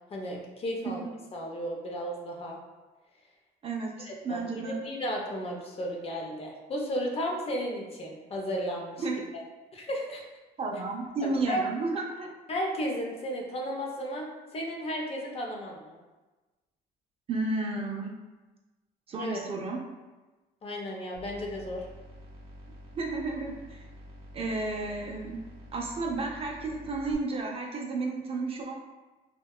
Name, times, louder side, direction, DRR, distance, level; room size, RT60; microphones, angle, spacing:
voice 1, 0.1-2.6 4.1-9.0 9.7-10.2 11.2-11.6 12.5-16.0 19.1-19.4 20.6-21.8, equal, 35° left, 0 dB, 0.5 m, -34 dB
voice 2, 3.6-4.8 9.0-9.2 10.6-12.3 17.3-18.1 19.1-19.8 22.9-23.8 24.3-25.4 25.7-28.7, right 3 dB, 35° right, 0 dB, 0.4 m, -32 dB
sound 1, 21.1-27.2, equal, 85° right, 0.6 m, -48 dB
2.7 x 2.1 x 2.2 m, 1.2 s
cardioid pair, 110°, 17 cm